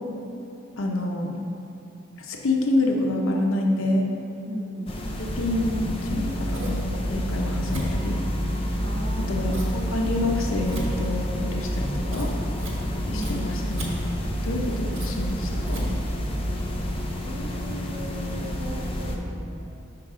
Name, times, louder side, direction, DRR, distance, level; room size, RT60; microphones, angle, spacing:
voice 1, 0.8-1.3 2.2-4.0 5.2-8.2 9.2-12.3 13.1-14.0 14.4-15.9, left 1 dB, 85° left, 1 dB, 0.7 m, -27 dB
voice 2, 4.5-5.0 8.8-10.1 13.0-13.8 17.2-19.7, right 1 dB, 45° right, 0 dB, 0.6 m, -38 dB
sound 1, 4.9-19.2, left 1 dB, 25° left, 0.5 m, -31 dB
Scissors, 6.1-16.7, equal, 80° right, 1.4 m, -30 dB
5.8 x 4.6 x 4.9 m, 2.7 s
head